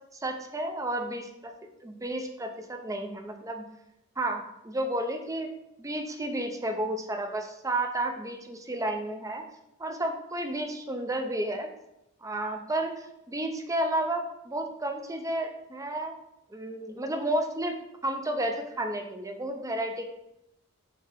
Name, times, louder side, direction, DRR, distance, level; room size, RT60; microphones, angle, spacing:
voice 1, 0.2-1.5 1.8-3.6 4.2-5.5 5.8-9.4 9.8-11.7 12.2-16.1 16.5-17.7 18.0-20.0, right 1 dB, 15° right, 5 dB, 0.6 m, -32 dB
6.7 x 3.4 x 5.1 m, 0.87 s
head